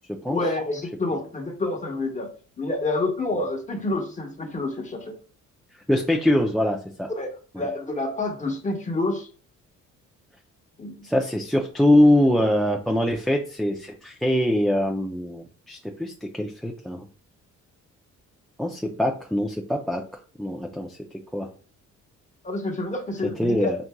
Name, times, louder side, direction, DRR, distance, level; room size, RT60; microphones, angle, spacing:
voice 1, 0.3-2.3 2.6-5.2 7.2-7.3 7.6-9.3 10.8-11.0 22.4-23.7, left 2 dB, 25° left, 3 dB, 1.1 m, -28 dB
voice 2, 5.9-7.1 7.5-7.6 11.0-17.1 18.6-20.0 20.4-21.0 21.3-21.5 23.4-23.8, left 1 dB, ahead, 2 dB, 0.4 m, -23 dB
5.9 x 2.6 x 2.2 m, 0.40 s
cardioid pair, 90°, 30 cm